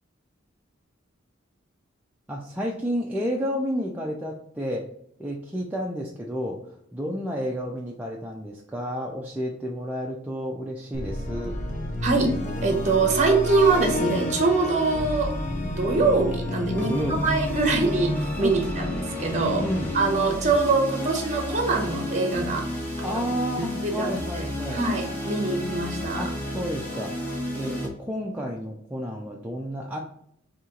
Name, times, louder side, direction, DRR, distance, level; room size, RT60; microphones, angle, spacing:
voice 1, 2.3-4.8 5.2-11.6 14.5-14.7 16.8-17.3 18.4-18.6 19.6-19.9 23.0-24.8 26.1-27.2 27.5-30.0, equal, 10° right, -2 dB, 0.4 m, -31 dB
sound 1, 10.9-21.1, left 1 dB, 40° left, 0.8 m, -32 dB
voice 2, 12.0-12.4 12.6-15.3 15.6-16.9 17.2-19.6 19.9-22.7 23.0-23.1 23.6-24.4 24.7-26.3, right 3 dB, 35° right, 4 dB, 0.9 m, -24 dB
sound 2, 13.1-27.9, left 1 dB, 10° left, 0.9 m, -32 dB
4.3 x 2.8 x 3.7 m, 0.70 s
head